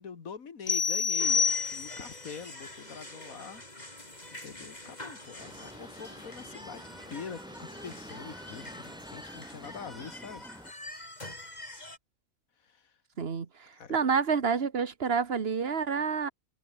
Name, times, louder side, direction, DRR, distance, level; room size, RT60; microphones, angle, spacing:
voice 1, 0.0-3.6 4.3-6.8 7.1-10.4 12.6-12.9 13.7-14.0, left 6 dB, 75° left, 2.3 m, -44 dB
sound 1, 0.7-2.2, left 6 dB, 45° left, 1.5 m, -27 dB
sound 2, 1.2-12.0, left 1 dB, 30° left, 5.3 m, -46 dB
sound 3, 5.4-10.7, equal, 5° right, 5.0 m, -48 dB
voice 2, 13.2-16.3, right 6 dB, 45° right, 1.6 m, -29 dB
omnidirectional pair, 1.5 m